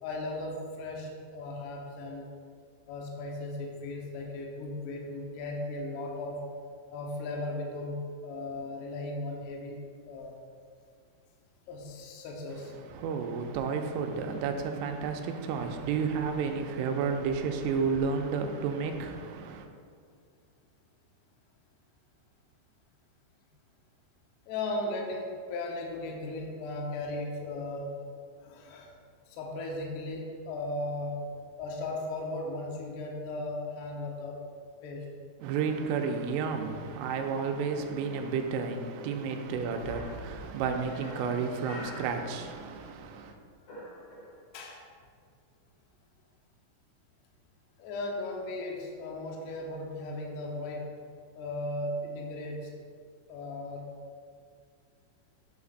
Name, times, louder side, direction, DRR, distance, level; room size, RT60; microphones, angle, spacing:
voice 1, 0.0-2.3 2.9-6.4 6.9-9.8 10.0-10.4 11.7-12.8 24.5-28.0 28.4-28.9 29.3-31.2 31.6-34.4 34.8-35.1 39.8-40.0 44.5-44.8 47.8-51.1 51.4-52.8 53.3-54.0, left 2 dB, 75° left, 2.8 m, -37 dB
voice 2, 12.8-19.7 35.4-43.3, right 5 dB, 90° right, 3.1 m, -31 dB
sound 1, 39.9-42.9 43.2-44.7, left 1 dB, 45° left, 2.2 m, -47 dB
8.5 x 8.2 x 2.5 m
omnidirectional pair, 5.5 m